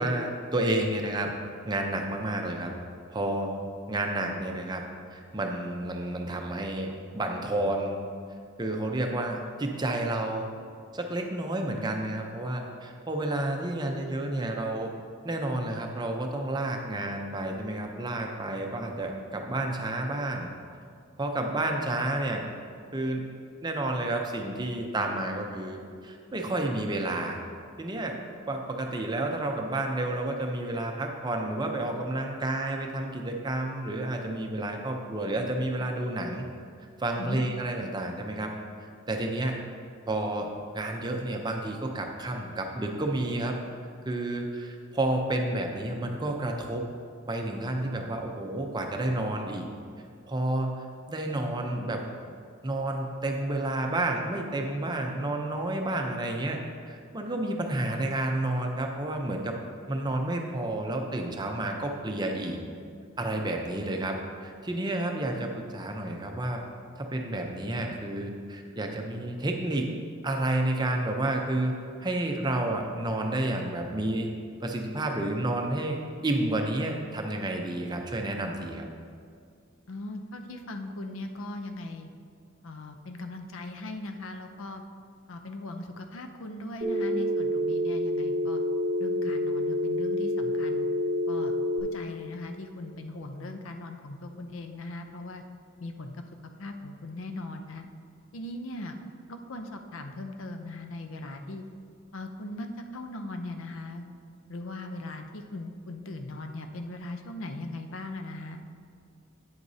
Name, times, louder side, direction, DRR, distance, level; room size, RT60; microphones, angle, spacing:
voice 1, 0.0-1.3 1.7-2.7 3.1-3.6 3.9-4.8 5.1-8.0 8.6-10.5 10.9-14.9 15.2-20.5 21.2-22.4 22.9-23.3 23.6-25.8 26.0-27.4 27.8-28.2 28.5-36.5 37.0-38.5 38.8-39.6 40.1-40.5 40.7-43.6 44.1-46.8 47.3-49.7 50.3-52.1 52.6-56.6 56.8-59.6 59.9-62.6 63.2-66.6 67.0-69.9 70.2-71.7 72.0-74.3 74.6-78.9, right 1 dB, 20° right, 2 dB, 0.6 m, -30 dB
voice 2, 79.9-82.1 82.6-84.9 85.3-88.6 89.0-90.9 91.3-91.5 91.9-95.4 95.8-96.2 96.6-97.8 98.3-99.0 99.3-101.6 102.1-104.1 104.5-108.6, left 2 dB, 70° left, 6 dB, 0.6 m, -39 dB
Telephone, 86.8-91.8, left 1 dB, 50° right, 1.0 m, -28 dB
8.8 x 7.8 x 2.7 m, 2.2 s
head